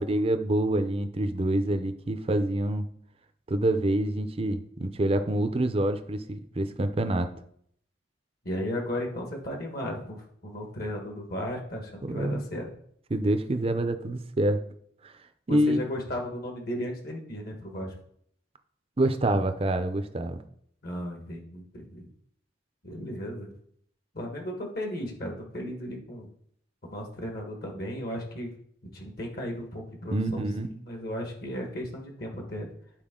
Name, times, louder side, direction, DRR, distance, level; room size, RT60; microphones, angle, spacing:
voice 1, 0.0-2.8 3.5-7.3 12.0-12.4 13.1-14.6 15.0-15.1 15.5-15.8 19.0-20.4 30.1-30.7, right 1 dB, 30° right, 9 dB, 0.6 m, -26 dB
voice 2, 8.4-12.7 15.5-17.9 20.8-22.1 22.8-23.5 24.1-26.3 26.8-28.5 28.9-30.4 30.8-32.7, equal, 55° left, 1 dB, 1.4 m, -35 dB
10.5 x 4.5 x 3.7 m, 0.66 s
head